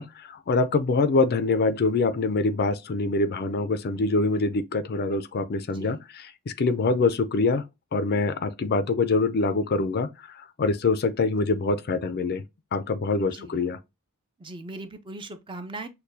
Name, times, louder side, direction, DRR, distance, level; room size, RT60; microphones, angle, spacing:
voice 1, 0.0-7.6 7.9-12.4 12.7-13.8, left 3 dB, 45° left, 0.4 m, -25 dB
voice 2, 14.4-15.9, right 2 dB, 20° right, 0.5 m, -39 dB
6.5 x 2.2 x 2.7 m
head